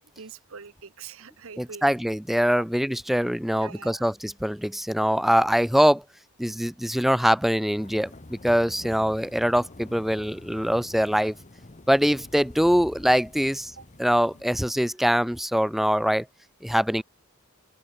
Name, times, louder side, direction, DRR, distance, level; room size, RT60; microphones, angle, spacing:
voice 1, 0.2-1.9 2.6-2.7 3.5-4.0 13.8-13.9, right 6 dB, 65° right, 0.9 m, -43 dB
voice 2, 1.6-6.0 6.4-11.3 11.9-13.7 14.0-16.3 16.6-17.0, equal, ahead, 0.6 m, -23 dB
sound 1, 7.8-14.4, left 1 dB, 35° left, 1.2 m, -47 dB
open air
head